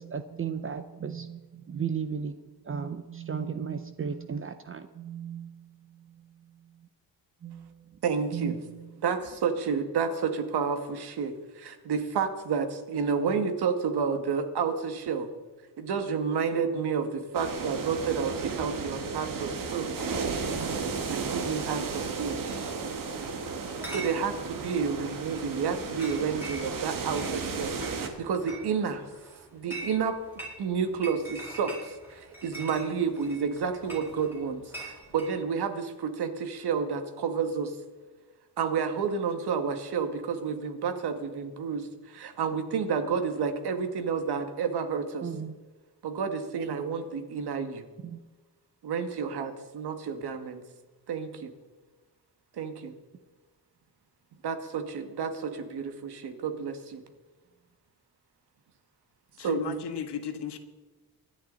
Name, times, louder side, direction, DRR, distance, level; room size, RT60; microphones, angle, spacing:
voice 1, 0.0-2.3 2.6-6.9 7.4-8.0 8.3-8.9 20.5-20.8 45.2-45.6 48.0-48.2, right 7 dB, 30° right, 10 dB, 0.6 m, -36 dB
voice 2, 8.0-8.6 9.0-15.3 15.8-20.0 21.1-22.7 23.9-29.1 29.5-30.2 30.6-34.6 35.1-37.8 38.6-45.3 46.0-47.8 48.8-50.6 51.1-51.5 52.5-52.9 54.4-57.0 59.4-59.7, right 6 dB, 70° right, 7 dB, 2.0 m, -30 dB
sound 1, 17.3-28.1, right 5 dB, 50° right, 1.9 m, -34 dB
Chatter / Chink clink, 23.6-35.3, right 2 dB, 5° right, 4.2 m, -44 dB
voice 3, 59.4-60.6, left 8 dB, 75° left, 7 dB, 1.7 m, -34 dB
24.5 x 11.0 x 4.1 m, 1.3 s
wide cardioid pair, 165°, 41 cm